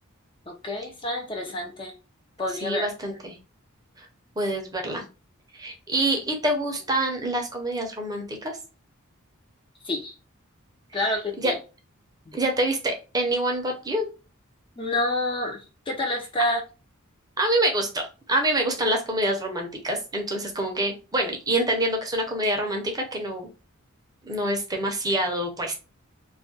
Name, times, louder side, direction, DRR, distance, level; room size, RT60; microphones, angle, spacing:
voice 1, 0.5-1.9 2.4-2.9 9.8-10.1 10.9-11.6 12.3-12.4 14.8-16.6, left 1 dB, 25° left, 0.5 m, -28 dB
voice 2, 2.6-3.3 4.4-5.0 5.5-8.5 10.9-11.0 11.4-11.5 12.3-14.1 17.4-18.0 18.3-23.5 24.2-25.7, right 1 dB, 20° right, 0.6 m, -26 dB
2.4 x 2.1 x 3.8 m
head